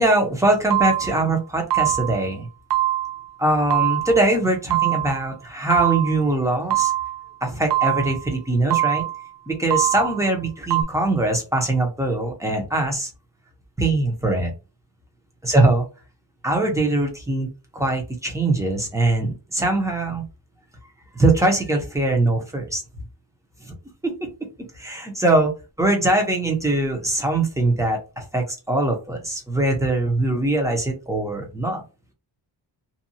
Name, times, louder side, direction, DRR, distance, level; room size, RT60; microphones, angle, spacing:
voice 1, 0.0-2.5 3.4-6.9 7.4-9.0 9.5-13.1 13.8-14.5 15.4-15.8 16.4-17.5 17.7-20.2 21.1-22.8 23.6-23.7 24.0-24.3 24.8-25.5 25.8-31.8, right 2 dB, 5° right, 2 dB, 0.7 m, -22 dB
sound 1, 0.7-1.3 1.7-2.3 2.7-3.3 3.7-4.3 4.7-5.3 5.7-6.3 6.7-7.3 7.7-8.3 8.7-9.3 9.7-10.3 10.7-10.8, right 13 dB, 70° right, 0.5 m, -23 dB
2.7 x 2.3 x 2.6 m, 0.30 s
wide cardioid pair, 150°, 43 cm